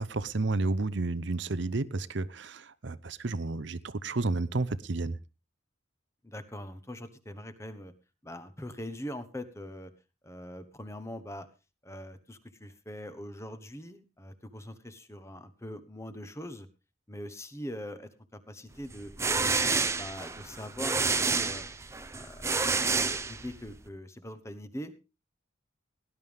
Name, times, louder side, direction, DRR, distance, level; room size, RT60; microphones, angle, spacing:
voice 1, 0.0-5.2, right 3 dB, 60° right, 0.7 m, -31 dB
voice 2, 6.2-7.9 8.2-9.9 10.2-11.5 11.8-16.7 17.1-19.1 19.6-21.6 22.1-22.6 22.9-25.1, equal, 15° left, 1.1 m, -42 dB
sound 1, 18.9-23.8, right 4 dB, 15° right, 0.7 m, -29 dB
18.0 x 11.0 x 3.5 m
head